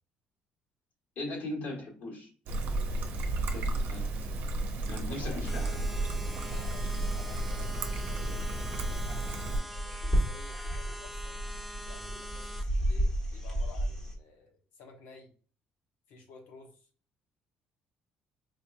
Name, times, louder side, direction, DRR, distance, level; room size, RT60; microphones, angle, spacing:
voice 1, 1.2-2.3 3.5-4.1 4.9-5.8, left 1 dB, 60° left, -1 dB, 2.0 m, -39 dB
Trickle dribble, 2.5-9.6, right 2 dB, 65° right, 0.7 m, -33 dB
voice 2, 5.0-5.8 6.5-8.2 8.7-11.4 11.8-15.3 16.1-16.9, left 4 dB, 85° left, 2 dB, 1.1 m, -52 dB
sound 1, 5.1-14.1, equal, 20° left, 1.3 m, -34 dB
sound 2, 5.5-12.6, equal, 5° right, 0.4 m, -44 dB
4.5 x 2.9 x 2.3 m, 0.39 s
cardioid pair, 100°, 3 cm